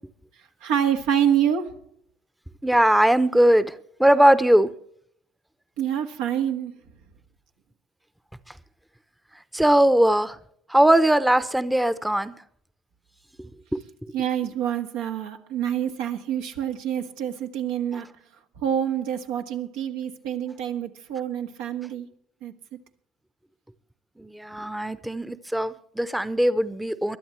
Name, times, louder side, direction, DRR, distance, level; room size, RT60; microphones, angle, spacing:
voice 1, 0.6-1.8 5.8-6.7 14.1-18.1 18.6-22.1 22.4-22.5, right 9 dB, 75° right, 1.6 m, -26 dB
voice 2, 2.6-3.7 4.0-4.7 9.5-10.4 10.7-12.3 13.7-13.8 24.2-27.2, right 1 dB, 5° right, 0.8 m, -20 dB
22.5 x 12.0 x 3.2 m
hypercardioid pair, 75°, 0 cm